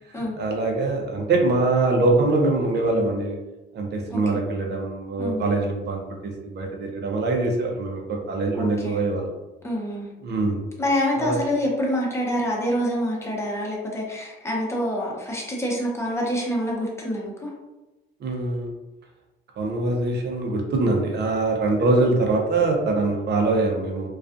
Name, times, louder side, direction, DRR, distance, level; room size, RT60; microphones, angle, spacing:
voice 1, 0.1-3.4 3.7-9.3 10.2-10.6 11.2-11.4 18.2-18.7 19.6-24.1, right 2 dB, 60° right, 1 dB, 0.6 m, -23 dB
voice 2, 5.2-5.6 8.6-9.0 9.6-10.1 10.8-17.5, equal, 15° left, -3 dB, 0.8 m, -26 dB
2.3 x 2.3 x 2.5 m, 1.1 s
cardioid pair, 90°, 20 cm